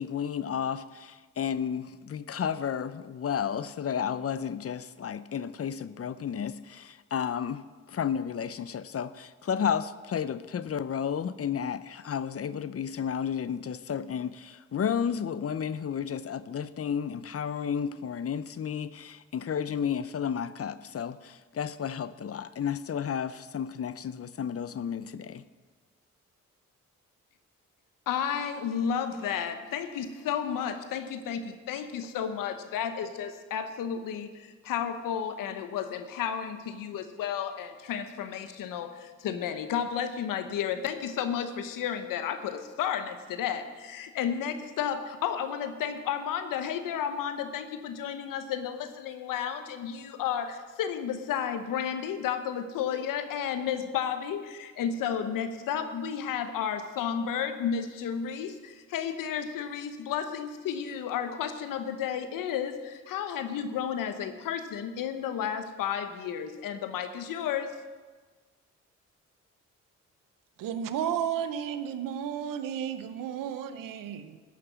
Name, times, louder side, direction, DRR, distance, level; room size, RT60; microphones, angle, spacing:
voice 1, 0.0-7.6 7.9-25.4, left 8 dB, 45° left, 0.7 m, -32 dB
voice 2, 28.1-67.7, left 8 dB, 90° left, 0.9 m, -32 dB
voice 3, 70.6-74.4, right 9 dB, 90° right, 0.8 m, -33 dB
13.0 x 6.0 x 8.0 m
supercardioid pair, 55°, 32 cm